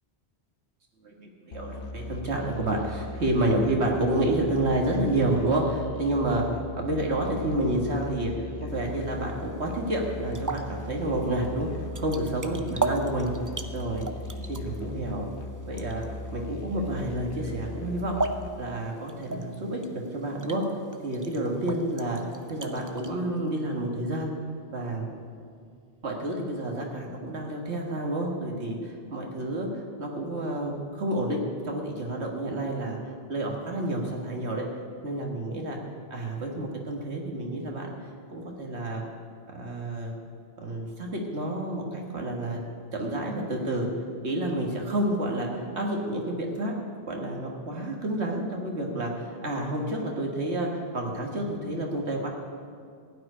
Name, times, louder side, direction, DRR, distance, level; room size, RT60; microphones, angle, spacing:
voice 1, 1.0-11.7 12.0-13.3 13.7-14.0 14.5-15.3 15.7-16.0 16.3-18.2 18.6-20.6 21.0-22.2 22.5-24.3 24.7-25.1 26.0-33.0 33.3-34.7 35.0-35.8 36.1-39.0 39.5-40.1 40.6-42.6 42.9-43.9 44.2-46.7 47.1-52.3, right 1 dB, 80° right, 0 dB, 1.9 m, -29 dB
Musical instrument, 1.5-18.5, left 2 dB, 85° left, 1.2 m, -39 dB
sound 1, 8.7-23.1, right 2 dB, 20° right, 0.6 m, -38 dB
sound 2, 21.5-26.3, right 5 dB, 30° left, 3.8 m, -50 dB
16.5 x 6.1 x 10.0 m, 2.2 s
omnidirectional pair, 1.1 m